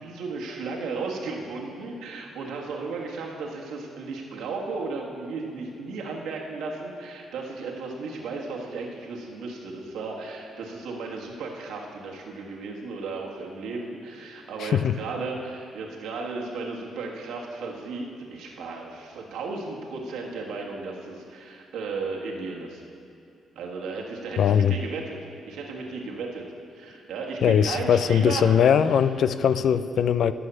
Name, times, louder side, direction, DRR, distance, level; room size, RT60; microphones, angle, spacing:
voice 1, 0.0-22.8 23.5-25.2 25.4-26.4 26.7-28.6 28.9-29.0, right 4 dB, 85° right, -1 dB, 1.6 m, -35 dB
voice 2, 14.6-15.0 24.4-24.8 27.4-30.3, left 8 dB, 65° left, 13 dB, 0.4 m, -21 dB
12.5 x 5.6 x 8.8 m, 2.5 s
cardioid pair, 90°, 0 cm